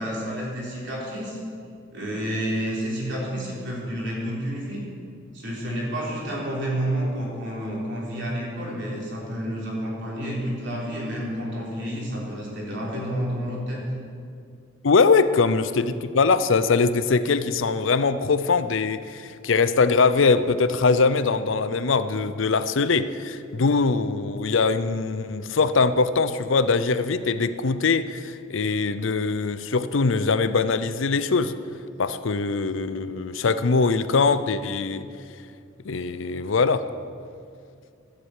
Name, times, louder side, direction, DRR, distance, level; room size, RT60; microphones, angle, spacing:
voice 1, 0.0-1.4 1.9-4.8 5.3-13.8 15.3-15.4, equal, 60° right, -3 dB, 3.7 m, -30 dB
voice 2, 14.8-31.6 32.0-35.1 35.8-36.8, left 4 dB, 70° left, 13 dB, 0.6 m, -22 dB
13.0 x 7.9 x 8.2 m, 2.3 s
head